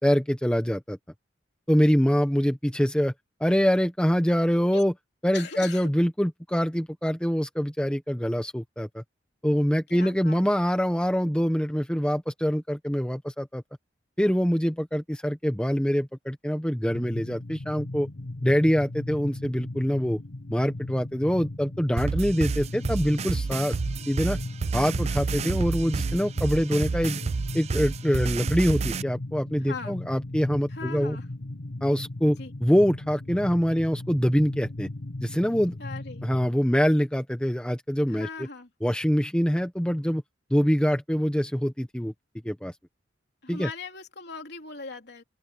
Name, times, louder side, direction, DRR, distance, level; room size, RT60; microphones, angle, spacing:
voice 1, 0.0-1.0 1.7-3.1 3.4-4.9 5.2-9.0 9.4-13.6 14.2-18.1 18.4-20.2 20.5-23.8 24.1-24.4 24.7-27.2 27.5-31.2 31.8-34.9 35.2-35.7 36.2-38.3 38.8-40.2 40.5-42.1 42.4-42.7 43.5-43.7, equal, 5° left, 1.3 m, -24 dB
voice 2, 5.3-5.9 9.9-10.4 29.6-30.0 30.7-31.3 32.4-32.5 35.8-36.2 38.1-38.7 43.4-45.2, left 4 dB, 60° left, 3.5 m, -39 dB
sound 1, 16.9-36.5, left 2 dB, 85° left, 1.6 m, -37 dB
sound 2, 22.0-29.0, right 4 dB, 35° right, 0.3 m, -29 dB
head